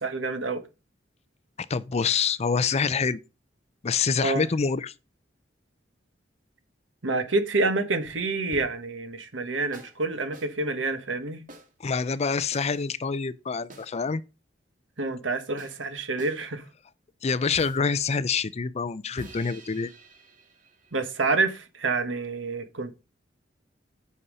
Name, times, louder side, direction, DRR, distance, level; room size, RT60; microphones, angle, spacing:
voice 1, 0.0-0.7 4.2-4.4 7.0-11.4 15.0-16.6 20.9-22.9, right 3 dB, 85° right, 1.4 m, -28 dB
voice 2, 1.7-3.2 3.8-4.9 11.8-14.2 17.2-19.9, left 5 dB, 35° left, 0.5 m, -26 dB
sound 1, 8.0-9.0 9.7-10.0 10.3-10.5 11.5-11.7 12.5-12.9 13.7-13.9 15.6-15.8 16.2-16.4 17.5-17.9 19.2-21.3, right 2 dB, 45° right, 1.9 m, -48 dB
8.6 x 5.5 x 5.3 m
head